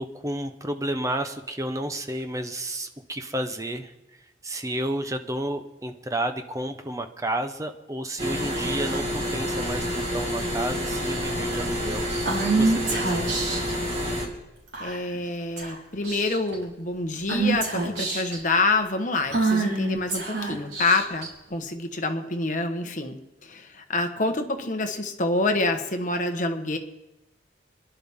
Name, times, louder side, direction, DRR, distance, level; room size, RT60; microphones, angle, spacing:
voice 1, 0.0-3.9 4.4-12.1 12.5-13.6, right 1 dB, 15° right, 7 dB, 0.9 m, -31 dB
sound 1, 8.2-14.3, equal, 35° right, 2.3 m, -28 dB
Female speech woman speaking / Whispering, 12.3-13.7 14.7-15.2 15.6-15.7 16.0-16.5 17.3-18.4 19.3-21.3, right 3 dB, 65° right, 4.4 m, -26 dB
voice 2, 14.8-23.2 23.4-26.8, left 3 dB, 45° left, 5 dB, 1.3 m, -27 dB
26.0 x 11.5 x 3.7 m, 0.95 s
head